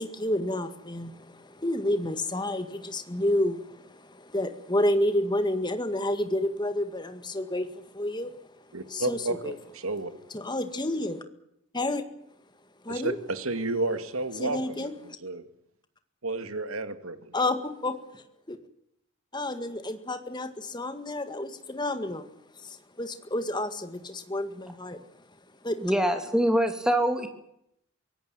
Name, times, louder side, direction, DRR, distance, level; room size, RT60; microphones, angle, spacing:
voice 1, 0.0-8.4 8.9-9.5 10.3-11.2 11.7-12.0 12.8-13.2 14.4-14.9 17.3-18.6 19.3-22.3 22.5-25.0 25.6-25.8, left 1 dB, 20° left, 9 dB, 1.9 m, -30 dB
voice 2, 8.7-10.1 12.9-15.4 16.2-17.3, right 2 dB, 80° right, 10 dB, 2.2 m, -32 dB
voice 3, 25.8-27.3, right 1 dB, 5° right, 6 dB, 2.7 m, -24 dB
24.0 x 17.5 x 9.0 m, 0.76 s
head